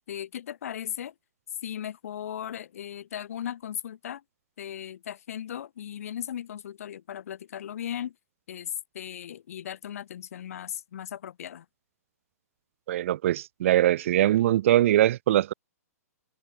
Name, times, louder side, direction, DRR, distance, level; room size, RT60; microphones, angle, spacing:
voice 1, 0.1-1.1 1.6-4.2 4.6-8.2 8.5-11.7, left 10 dB, 60° left, 1.8 m, -37 dB
voice 2, 12.9-15.5, right 13 dB, 55° right, 0.4 m, -22 dB
hypercardioid pair, 125°, 9 cm